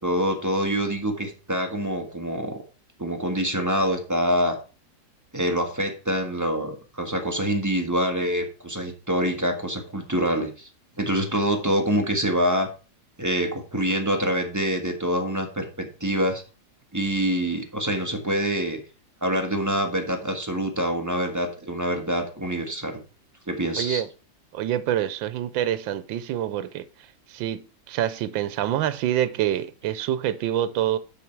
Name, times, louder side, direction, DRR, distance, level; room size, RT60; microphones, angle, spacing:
voice 1, 0.0-2.6 3.0-4.6 5.3-10.7 11.0-12.7 13.2-16.4 16.9-18.8 19.2-23.0 23.5-24.0, equal, 10° right, 1.2 m, -25 dB
voice 2, 23.8-24.1 24.5-26.9 27.3-31.0, right 11 dB, 85° right, 1.4 m, -26 dB
7.0 x 6.6 x 4.5 m
omnidirectional pair, 2.0 m